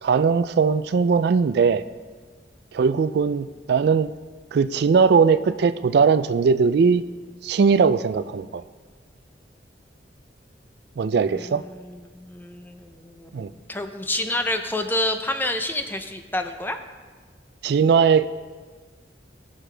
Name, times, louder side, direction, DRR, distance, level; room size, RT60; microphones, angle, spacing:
voice 1, 0.0-1.8 2.7-4.1 4.5-7.0 7.4-8.6 11.0-11.6 13.3-13.5 17.6-18.3, right 5 dB, 60° right, 13 dB, 0.3 m, -19 dB
voice 2, 11.2-16.8, left 1 dB, 10° left, 6 dB, 0.6 m, -29 dB
18.0 x 6.6 x 3.4 m, 1.4 s
head